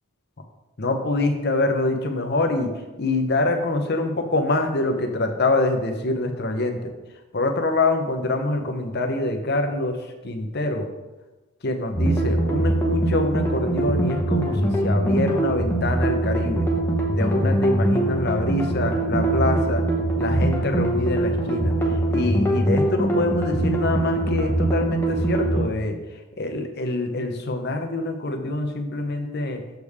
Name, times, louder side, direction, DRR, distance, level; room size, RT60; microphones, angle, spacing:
voice 1, 0.8-6.9 7.3-10.0 10.2-10.9 11.6-16.7 17.1-19.9 20.2-21.7 22.1-26.0 26.4-29.6, left 2 dB, 50° left, 5 dB, 0.8 m, -25 dB
sound 1, 12.0-25.7, right 1 dB, 10° left, 1.0 m, -22 dB
6.8 x 6.5 x 3.5 m, 1.1 s
head